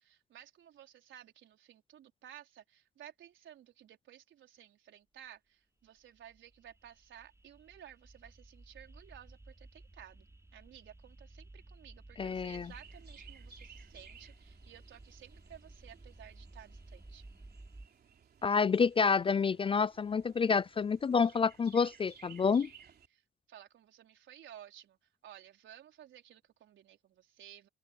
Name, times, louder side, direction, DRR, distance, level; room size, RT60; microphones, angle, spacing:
voice 1, 0.0-10.3 10.5-17.2 23.1-23.2 23.5-25.0 25.2-27.7, right 10 dB, 75° right, 4.7 m, -55 dB
sound 1, 5.9-17.9, right 2 dB, 15° right, 4.5 m, -55 dB
voice 2, 12.2-12.7 18.4-22.7, left 5 dB, 25° left, 0.4 m, -28 dB
Chirp tweet, 12.2-23.1, right 6 dB, 55° right, 3.4 m, -59 dB
open air
cardioid pair, 90°, 20 cm